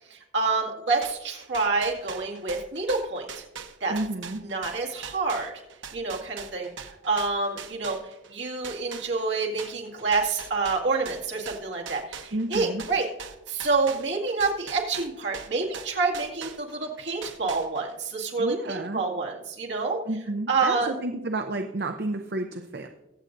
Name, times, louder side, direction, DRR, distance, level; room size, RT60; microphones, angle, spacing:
voice 1, 0.1-3.4 3.8-3.9 4.4-5.5 5.9-6.7 7.0-8.0 8.3-13.1 13.5-20.0 20.5-20.9, right 3 dB, 75° right, -1 dB, 2.1 m, -27 dB
sound 1, 1.0-8.3 8.6-16.9 17.2-18.0, right 6 dB, 90° right, 0.9 m, -41 dB
voice 2, 3.9-4.4 12.3-12.8 18.4-19.0 20.1-22.9, right 2 dB, 55° right, 6 dB, 0.6 m, -31 dB
23.0 x 7.7 x 2.6 m, 0.99 s
head